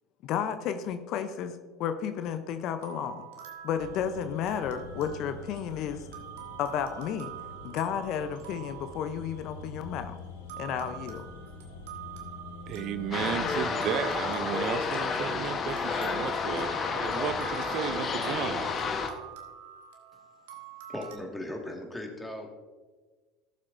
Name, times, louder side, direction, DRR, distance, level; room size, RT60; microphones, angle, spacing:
voice 1, 0.2-3.3 3.6-6.0 6.6-7.3 7.6-10.2 10.6-11.3, left 8 dB, 55° left, 10 dB, 0.7 m, -32 dB
sound 1, 2.8-9.9 10.5-21.2, right 11 dB, 75° right, 1.5 m, -46 dB
sound 2, 3.8-13.7, left 3 dB, 80° left, 1.0 m, -45 dB
voice 2, 12.7-18.7, right 9 dB, 55° right, 12 dB, 0.5 m, -34 dB
sound 3, 13.1-19.1, left 5 dB, 40° left, 1.1 m, -30 dB
voice 3, 20.9-22.5, left 1 dB, 10° left, 1 dB, 1.9 m, -37 dB
15.0 x 7.4 x 2.6 m, 1.3 s
hypercardioid pair, 80°, 0 cm